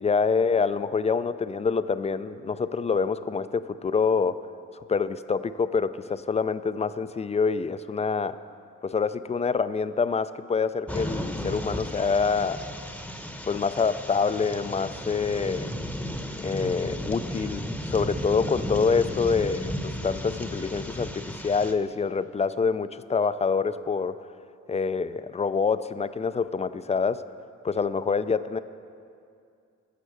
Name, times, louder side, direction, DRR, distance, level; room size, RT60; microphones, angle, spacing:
voice 1, 0.0-4.4 4.9-8.4 8.8-12.6 13.5-15.7 16.4-24.2 24.7-27.2 27.6-28.6, left 5 dB, 20° left, 13 dB, 0.4 m, -26 dB
sound 1, 10.9-21.7, equal, 5° left, 0.9 m, -34 dB
15.0 x 6.8 x 6.4 m, 2.4 s
cardioid pair, 90°, 30 cm